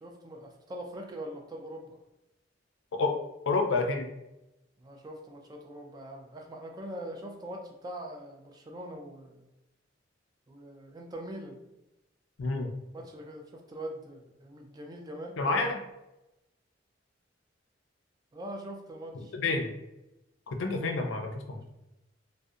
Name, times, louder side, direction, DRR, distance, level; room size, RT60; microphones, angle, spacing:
voice 1, 0.0-2.0 4.8-9.5 10.5-11.6 12.9-15.4 18.3-19.4, right 1 dB, 20° right, 2 dB, 0.3 m, -42 dB
voice 2, 3.5-4.1 12.4-12.7 15.4-15.8 19.4-19.7 20.5-21.6, left 3 dB, 80° left, 3 dB, 0.4 m, -29 dB
2.6 x 2.0 x 2.4 m, 0.94 s
head